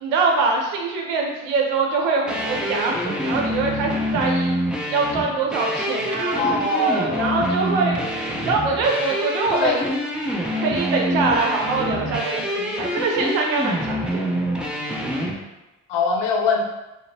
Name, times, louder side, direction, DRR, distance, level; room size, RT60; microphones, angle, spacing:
voice 1, 0.0-4.6 4.9-8.0 8.4-9.8 10.6-14.4, right 4 dB, 85° right, 1 dB, 0.7 m, -24 dB
sound 1, 2.3-15.3, equal, ahead, 0.5 m, -26 dB
voice 2, 6.3-7.5 9.6-9.8 15.9-16.7, left 3 dB, 65° left, 1 dB, 0.6 m, -22 dB
2.8 x 2.0 x 2.7 m, 1.0 s
supercardioid pair, 75°, 44 cm